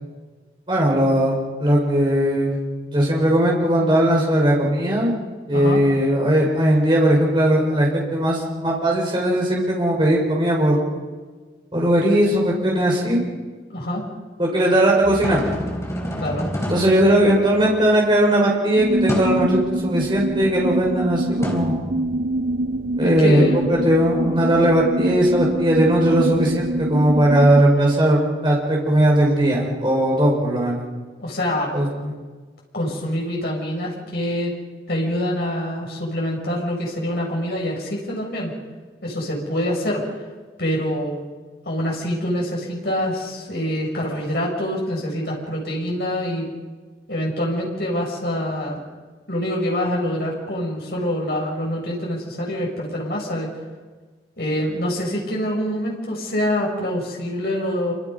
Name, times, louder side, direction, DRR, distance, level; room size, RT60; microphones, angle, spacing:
voice 1, 0.7-2.6 2.9-5.1 5.5-10.8 11.7-13.2 14.4-15.4 16.7-21.9 23.0-30.9 31.7-32.1, right 1 dB, 30° right, -3 dB, 5.8 m, -18 dB
voice 2, 13.7-14.0 16.2-16.5 23.0-23.7 31.2-31.7 32.7-34.5 34.9-38.5 39.0-40.0 40.6-41.2 41.7-46.5 47.1-48.8 49.3-53.5 54.4-57.9, equal, 60° left, -2 dB, 6.3 m, -25 dB
sound 1, 15.0-17.9 19.1-19.5 21.4-22.5, left 1 dB, 15° left, 4.1 m, -29 dB
sound 2, 18.8-27.6, right 1 dB, 55° right, 0.6 m, -25 dB
27.5 x 25.5 x 5.5 m, 1.4 s
head